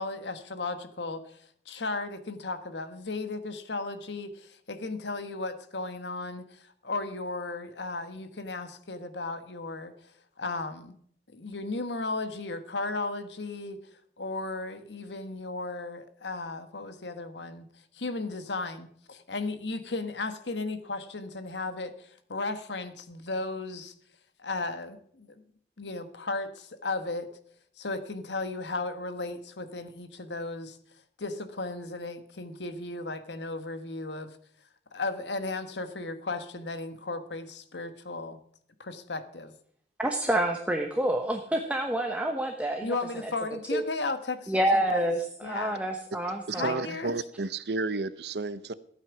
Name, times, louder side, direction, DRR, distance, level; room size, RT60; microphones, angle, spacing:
voice 1, 0.0-10.1 10.4-10.9 11.3-13.8 14.2-17.7 17.9-23.9 24.4-25.4 25.8-27.3 27.8-30.8 31.2-34.4 34.9-38.4 38.8-39.5 42.8-45.1 45.4-45.8 46.5-47.1, left 3 dB, 85° left, 1.4 m, -35 dB
voice 2, 40.0-42.9 43.2-43.3 43.7-43.8 44.5-46.8, right 1 dB, 10° right, 1.0 m, -28 dB
voice 3, 46.5-48.7, right 3 dB, 70° right, 0.7 m, -32 dB
14.5 x 9.0 x 5.9 m
head